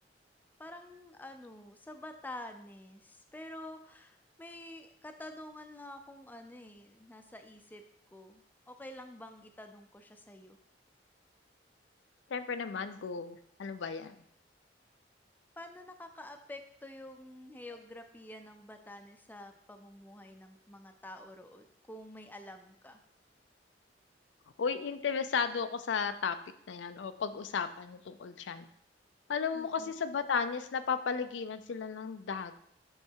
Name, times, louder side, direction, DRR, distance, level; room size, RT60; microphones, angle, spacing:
voice 1, 0.6-7.8 8.1-10.6 15.6-23.0 29.5-29.9, left 1 dB, 10° left, 6 dB, 0.4 m, -48 dB
voice 2, 12.3-14.2 24.6-26.4 26.7-28.7 29.3-32.5, left 6 dB, 80° left, 11 dB, 0.4 m, -34 dB
7.8 x 3.2 x 4.6 m, 0.68 s
head